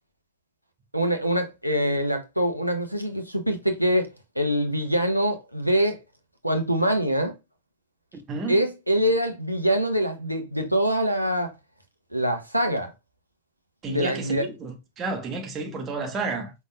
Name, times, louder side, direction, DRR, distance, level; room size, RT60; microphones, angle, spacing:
voice 1, 0.9-4.1 4.4-6.0 6.4-7.3 8.5-11.5 12.1-12.9 13.9-14.5, equal, 90° right, 1.0 m, -24 dB
voice 2, 8.3-8.6 13.8-16.5, right 3 dB, 25° right, 1.6 m, -31 dB
5.5 x 4.1 x 2.3 m
figure-of-eight pair, 90°, 0 cm